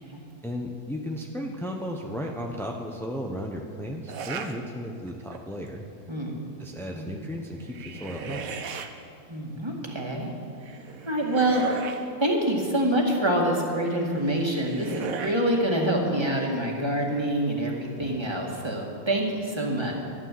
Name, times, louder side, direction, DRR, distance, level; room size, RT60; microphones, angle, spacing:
voice 1, 0.4-5.9 6.6-8.4, equal, 5° left, 1 dB, 0.4 m, -34 dB
sound 1, 4.1-4.6 5.1-5.5 7.5-8.9 10.6-12.1 14.0-15.4, right 6 dB, 60° right, 1.2 m, -36 dB
voice 2, 6.1-6.4 6.9-7.1 9.3-10.3 11.0-11.6 12.2-19.9, right 1 dB, 15° right, -1 dB, 2.1 m, -26 dB
13.5 x 11.5 x 7.6 m, 2.4 s
omnidirectional pair, 1.7 m